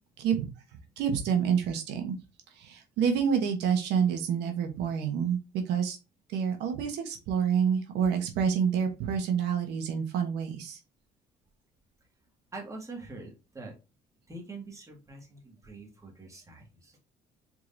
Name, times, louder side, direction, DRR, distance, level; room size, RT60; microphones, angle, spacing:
voice 1, 1.0-2.2 2.5-5.4 5.7-6.0 6.3-10.8, right 7 dB, 85° right, 4 dB, 1.2 m, -28 dB
voice 2, 12.5-13.7 14.3-17.0, right 3 dB, 20° right, 0 dB, 2.0 m, -44 dB
4.6 x 3.8 x 2.7 m, 0.27 s
cardioid pair, 110°, 17 cm